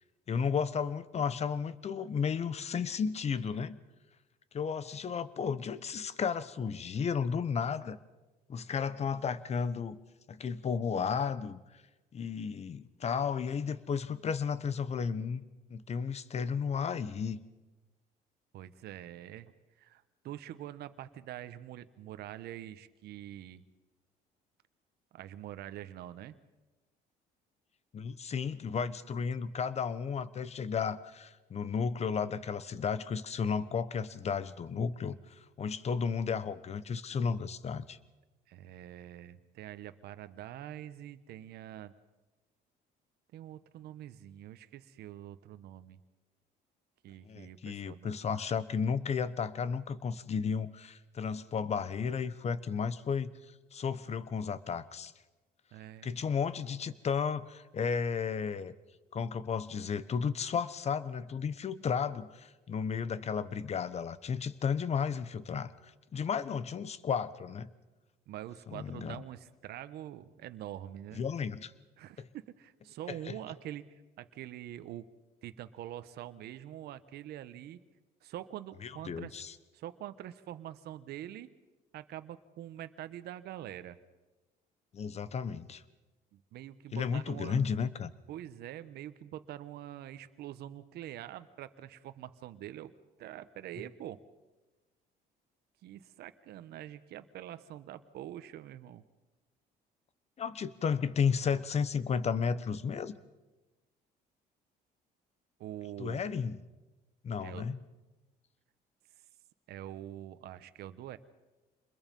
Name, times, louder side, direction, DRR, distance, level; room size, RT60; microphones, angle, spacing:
voice 1, 0.3-3.8 4.5-8.0 8.5-10.0 10.3-11.6 12.1-15.4 15.7-17.4 27.9-38.0 47.2-53.3 53.7-55.1 56.0-58.7 59.1-65.7 66.1-67.7 68.7-69.2 71.2-71.7 72.2-72.3 73.1-73.3 78.8-79.5 84.9-85.8 86.9-88.1 100.4-103.1 106.0-106.6 107.2-107.8, left 6 dB, 40° left, 16 dB, 1.1 m, -33 dB
voice 2, 18.5-19.5 19.8-23.6 25.1-26.4 38.5-41.9 43.3-46.0 47.0-48.2 55.7-56.1 68.3-71.2 72.0-75.1 75.4-77.8 78.2-79.4 79.7-81.5 81.9-84.0 86.3-87.6 88.3-92.9 93.2-94.2 95.8-99.0 105.6-106.4 107.4-107.7 109.7-111.2, right 12 dB, 75° right, 12 dB, 1.1 m, -45 dB
27.5 x 21.5 x 5.4 m, 1.1 s
cardioid pair, 110°, 17 cm